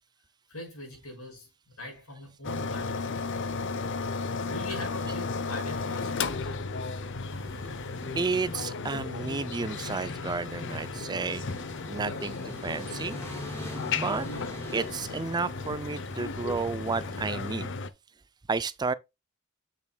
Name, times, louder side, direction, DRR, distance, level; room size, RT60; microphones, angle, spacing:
voice 1, 0.5-3.2 4.5-6.7, left 1 dB, 90° left, 5.4 m, -42 dB
sound 1, 2.4-17.9, left 4 dB, 60° left, 0.7 m, -34 dB
sound 2, 7.3-17.5, left 1 dB, 10° left, 2.6 m, -44 dB
voice 2, 8.2-11.4 11.9-13.2 13.9-14.3 14.7-17.7 18.5-18.9, right 4 dB, 20° right, 0.4 m, -31 dB
8.2 x 7.1 x 2.3 m
head